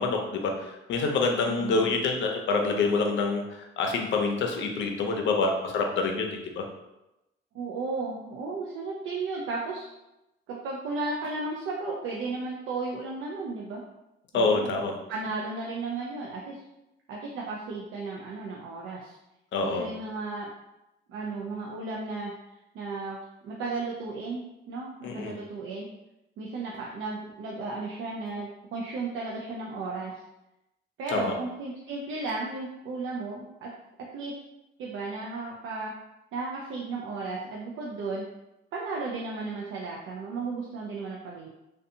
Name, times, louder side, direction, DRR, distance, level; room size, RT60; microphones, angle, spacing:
voice 1, 0.0-6.6 14.3-15.0 19.5-19.9 25.0-25.3 31.1-31.3, left 3 dB, 70° left, 3 dB, 0.5 m, -27 dB
voice 2, 1.5-1.9 7.5-9.9 10.5-13.8 14.3-14.8 15.1-16.6 17.1-19.2 19.6-20.5 21.1-22.3 22.7-23.2 23.4-25.9 26.4-30.1 31.0-33.7 34.1-34.3 34.8-35.9 36.3-38.2 38.7-41.5, right 3 dB, 85° right, -3 dB, 0.4 m, -34 dB
2.5 x 2.2 x 2.6 m, 0.92 s
cardioid pair, 90°, 20 cm